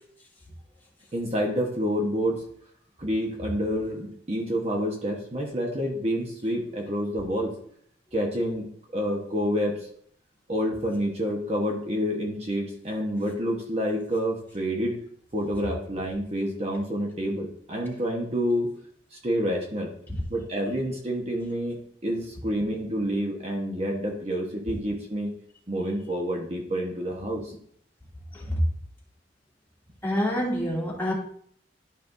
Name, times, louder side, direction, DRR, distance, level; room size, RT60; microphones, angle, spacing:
voice 1, 1.1-2.4 3.0-7.5 8.1-9.8 10.5-15.0 15.3-18.7 19.1-19.9 20.3-25.3 25.7-27.4, equal, 35° right, 0 dB, 1.1 m, -28 dB
voice 2, 30.0-31.1, equal, 10° left, -5 dB, 2.6 m, -27 dB
12.0 x 5.5 x 2.6 m, 0.63 s
head